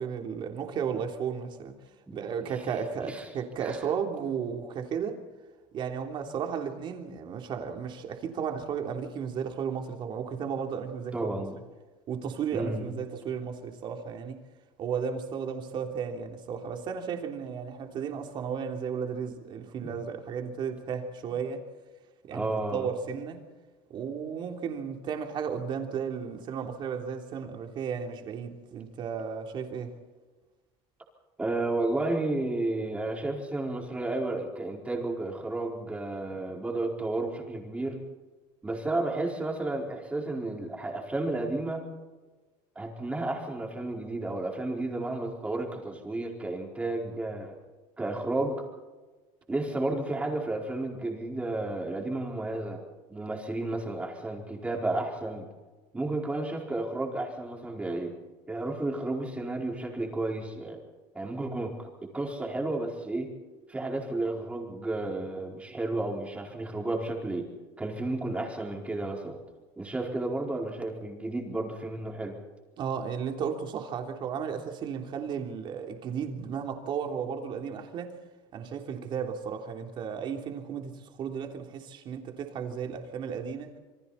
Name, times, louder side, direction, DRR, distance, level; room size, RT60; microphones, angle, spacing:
voice 1, 0.0-1.7 2.1-5.2 5.7-11.1 12.1-14.4 14.8-21.6 22.3-23.4 23.9-29.9 72.8-78.1 78.5-83.7, right 7 dB, 40° right, 3.4 m, -34 dB
voice 2, 11.1-11.6 12.5-12.9 19.8-20.0 22.3-22.9 31.4-38.1 38.6-41.8 42.7-47.6 48.0-48.7 49.5-52.8 53.1-55.5 55.9-58.1 58.5-60.8 61.1-63.3 63.7-67.5 67.8-69.4 69.8-72.4, right 2 dB, 10° right, 4.6 m, -32 dB
28.0 x 24.5 x 4.2 m
cardioid pair, 160°, 13 cm